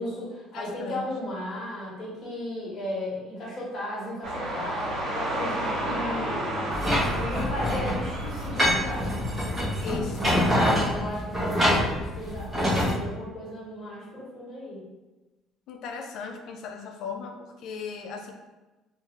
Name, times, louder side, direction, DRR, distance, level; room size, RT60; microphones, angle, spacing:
voice 1, 0.0-6.7 7.1-9.2 10.7-14.8, left 1 dB, 40° left, -6 dB, 1.2 m, -35 dB
voice 2, 0.5-1.0 9.8-11.1 15.7-18.3, left 5 dB, 65° left, 5 dB, 0.4 m, -37 dB
sound 1, 4.2-10.5, right 1 dB, 65° right, 1.1 m, -32 dB
sound 2, 6.7-12.9, equal, 15° right, 1.1 m, -26 dB
2.5 x 2.5 x 2.9 m, 1.1 s
cardioid pair, 120°, 0 cm